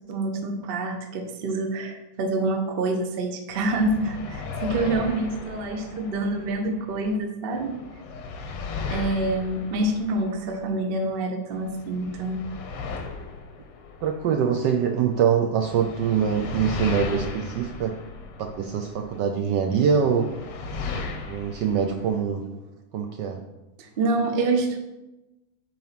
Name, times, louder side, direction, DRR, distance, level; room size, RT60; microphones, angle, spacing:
voice 1, 0.1-7.8 8.9-12.4 14.5-14.6 23.8-24.8, right 2 dB, 60° right, 5 dB, 0.6 m, -27 dB
sound 1, 3.5-7.2 7.5-11.2 11.5-15.2 15.6-19.2 19.7-22.2, left 4 dB, 90° left, 1.9 m, -36 dB
voice 2, 14.0-18.0 18.4-20.3 21.3-22.5 22.9-23.4, right 7 dB, 75° right, 4 dB, 1.0 m, -24 dB
8.2 x 4.5 x 5.8 m, 1.0 s
omnidirectional pair, 2.4 m